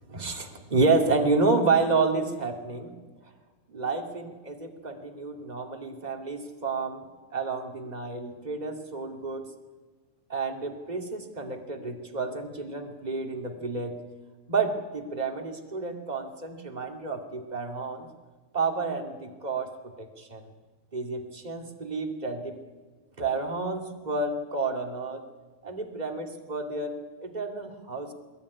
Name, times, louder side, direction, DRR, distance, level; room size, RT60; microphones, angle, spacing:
voice 1, 0.1-2.9 3.7-7.1 7.3-9.5 10.3-14.0 14.5-18.1 18.5-20.5 20.9-22.6 23.2-25.2 25.6-26.9 27.2-28.1, right 3 dB, 15° right, 2 dB, 1.6 m, -29 dB
22.0 x 21.0 x 9.9 m, 1.3 s
omnidirectional pair, 4.3 m